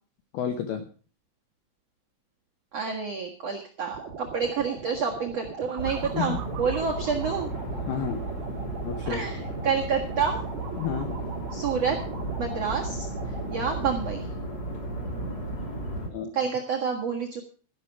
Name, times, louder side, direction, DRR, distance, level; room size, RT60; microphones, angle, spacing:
voice 1, 0.3-0.9 6.1-6.4 7.9-8.2 8.8-9.2 10.8-11.2 16.1-16.3, left 8 dB, 80° left, 7 dB, 2.2 m, -30 dB
voice 2, 2.7-7.5 9.0-10.4 11.5-11.9 12.4-13.1 13.5-14.2 16.3-17.4, right 6 dB, 90° right, 0 dB, 1.4 m, -28 dB
sound 1, 3.9-14.0, right 5 dB, 50° right, 2.4 m, -40 dB
sound 2, 5.8-16.1, right 1 dB, 25° left, 2.3 m, -34 dB
13.0 x 11.5 x 4.7 m, 0.38 s
omnidirectional pair, 5.9 m